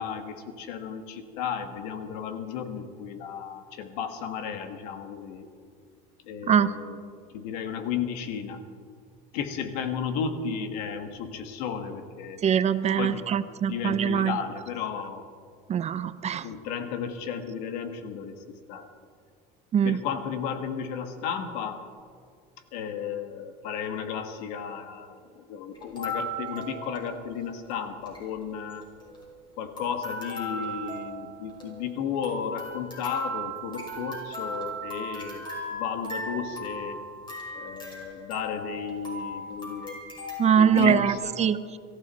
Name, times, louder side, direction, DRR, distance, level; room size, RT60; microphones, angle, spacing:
voice 1, 0.0-5.5 6.2-7.0 7.3-8.6 9.3-12.4 13.0-13.2 13.7-15.3 16.4-18.9 19.8-21.8 22.7-28.9 29.6-37.0 37.5-40.0 40.5-41.3, left 7 dB, 85° left, 7 dB, 1.8 m, -34 dB
voice 2, 12.4-14.3 15.7-16.4 19.7-20.0 40.4-41.6, right 8 dB, 30° right, 13 dB, 0.7 m, -23 dB
sound 1, 25.7-27.4 27.7-27.8 28.0-28.2 28.7-29.5 29.8-41.2, equal, 20° left, 5.7 m, -37 dB
23.0 x 14.5 x 4.3 m, 2.1 s
supercardioid pair, 120°, 21 cm